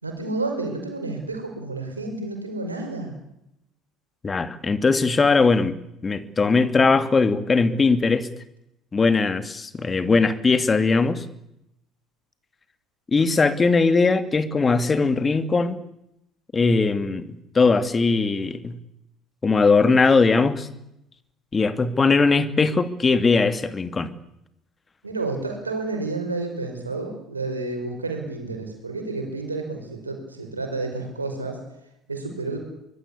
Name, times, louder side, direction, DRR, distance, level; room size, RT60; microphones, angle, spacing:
voice 1, 0.0-3.2 25.0-31.6 32.1-32.6, right 3 dB, 90° right, 4 dB, 5.4 m, -30 dB
voice 2, 4.2-5.8 6.0-8.3 8.9-11.3 13.1-15.8 16.5-18.8 19.4-20.7 21.5-24.1, left 4 dB, 25° left, 12 dB, 2.4 m, -20 dB
24.5 x 22.0 x 8.5 m, 0.82 s
figure-of-eight pair, 60°, 0 cm